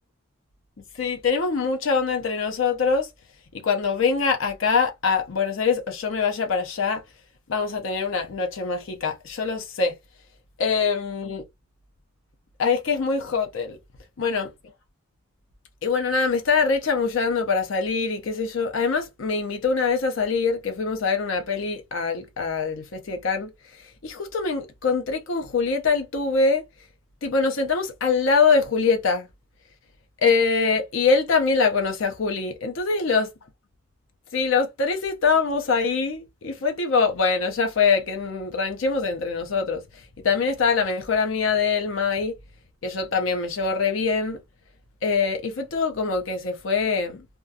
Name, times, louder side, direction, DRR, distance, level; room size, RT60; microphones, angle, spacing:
voice 1, 1.0-3.1 3.5-7.0 7.5-9.9 10.6-11.4 12.6-13.8 14.2-14.5 15.8-26.6 27.2-29.3 30.2-33.3 34.3-42.3 42.8-44.4 45.0-47.3, left 5 dB, 70° left, 0.6 m, -24 dB
2.3 x 2.2 x 2.6 m
head